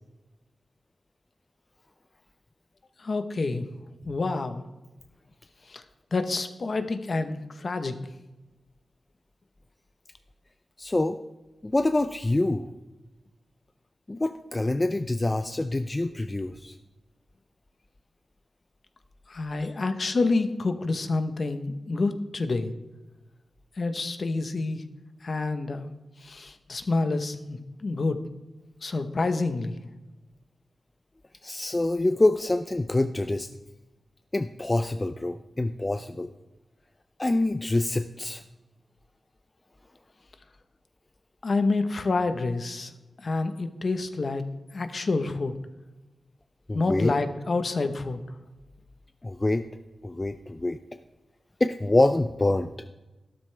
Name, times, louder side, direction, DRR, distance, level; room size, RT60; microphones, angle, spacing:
voice 1, 3.0-3.7 4.0-4.6 5.7-5.8 6.1-8.0 19.3-22.7 23.8-24.8 25.2-25.9 26.2-28.2 28.8-29.8 41.4-42.9 43.2-44.4 44.7-45.5 46.7-48.2, left 3 dB, 45° left, 9 dB, 1.0 m, -28 dB
voice 2, 10.8-11.2 11.6-12.7 14.1-16.8 19.6-19.8 31.4-33.5 34.3-36.3 37.2-38.4 46.7-47.1 49.2-49.7 50.0-50.8 51.6-52.9, left 2 dB, 20° left, 9 dB, 0.4 m, -26 dB
12.5 x 12.5 x 3.3 m, 1.1 s
wide cardioid pair, 135°, 0 cm